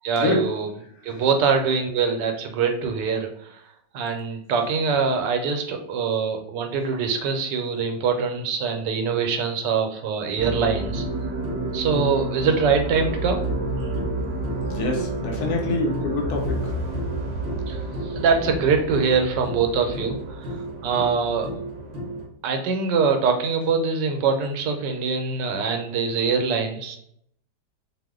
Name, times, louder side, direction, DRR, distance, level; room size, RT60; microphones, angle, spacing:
voice 1, 0.0-0.7 1.0-3.3 3.9-11.0 11.7-13.4 17.7-17.8 18.1-20.2 20.8-21.5 22.4-27.0, right 5 dB, 90° right, 5 dB, 1.2 m, -23 dB
sound 1, 10.4-22.2, right 1 dB, 55° right, 0.7 m, -29 dB
voice 2, 14.7-16.4, left 2 dB, 70° left, 1 dB, 1.1 m, -25 dB
2.8 x 2.1 x 3.5 m, 0.71 s
omnidirectional pair, 1.8 m